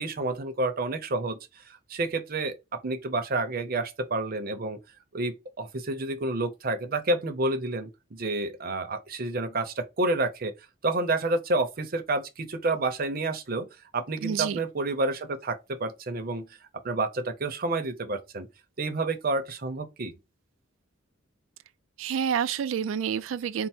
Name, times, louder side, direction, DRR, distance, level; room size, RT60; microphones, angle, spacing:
voice 1, 0.0-4.8 5.1-10.5 10.8-13.7 13.9-16.5 16.8-18.5 18.8-20.1, right 2 dB, 45° right, 0.7 m, -29 dB
voice 2, 14.2-14.6 22.0-23.7, right 8 dB, 75° right, 0.3 m, -28 dB
4.4 x 2.0 x 4.2 m
head